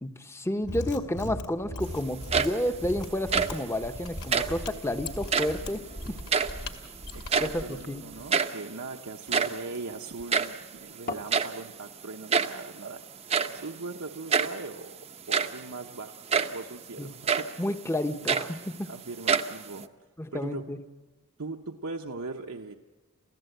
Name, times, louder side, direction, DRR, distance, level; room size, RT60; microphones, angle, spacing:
voice 1, 0.0-5.8 6.1-6.2 7.4-8.1 17.0-17.1 17.6-18.9 20.2-20.8, left 1 dB, 10° left, 9 dB, 0.9 m, -31 dB
Mechanisms, 0.6-7.7, left 1 dB, 75° left, 2.4 m, -39 dB
sound 1, 2.1-2.8 3.1-3.7 4.2-4.6 5.2-5.7 6.0-6.9 7.1-7.7 8.0-8.1 8.3-8.6 9.1-10.6 11.3-11.7 12.3-12.7 13.3-13.6 14.3-14.6 15.1-15.7 16.3-16.6 17.2-17.6 18.0-18.9 19.2-19.9, right 6 dB, 30° right, 0.7 m, -27 dB
sound 2, 4.9-11.4, left 2 dB, 40° left, 1.1 m, -46 dB
voice 2, 7.1-13.0 13.5-15.0 15.3-16.2 16.5-17.5 18.9-19.9 20.3-20.6 21.4-22.8, right 3 dB, 70° right, 3 dB, 0.9 m, -39 dB
28.5 x 15.5 x 8.0 m, 1.3 s
head